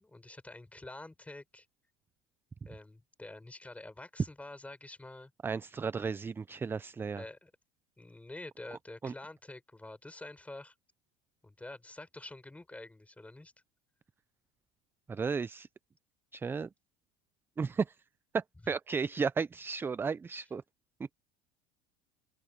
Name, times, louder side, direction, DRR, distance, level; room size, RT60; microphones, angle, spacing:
voice 1, 0.0-1.7 2.6-5.3 7.1-7.5 8.0-10.7 11.4-13.5, left 2 dB, 10° left, 6.2 m, -47 dB
voice 2, 5.4-7.2 9.0-9.1 15.1-15.7 16.3-16.7 17.6-18.0 18.3-20.6, right 5 dB, 15° right, 0.3 m, -34 dB
open air
supercardioid pair, 115°, 17 cm